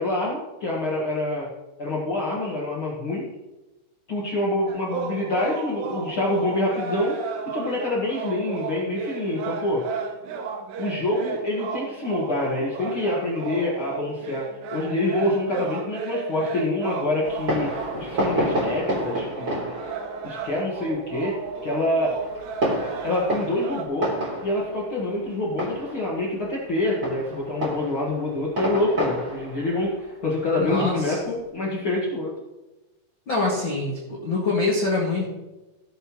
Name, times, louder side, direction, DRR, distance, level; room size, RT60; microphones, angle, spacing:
voice 1, 0.0-1.5 1.8-3.3 4.1-7.2 7.5-9.8 10.8-14.5 14.7-17.7 18.0-19.7 20.2-21.4 21.6-22.2 23.0-24.1 24.4-32.3, left 2 dB, 90° left, -5 dB, 1.1 m, -26 dB
sound 1, 4.7-23.8, right 5 dB, 70° right, 2.9 m, -34 dB
Fireworks, 17.2-31.4, right 1 dB, 25° right, 3.2 m, -31 dB
voice 2, 30.6-31.2 33.3-35.3, left 3 dB, 40° left, -4 dB, 1.7 m, -25 dB
18.0 x 7.9 x 3.1 m, 1.0 s
omnidirectional pair, 5.5 m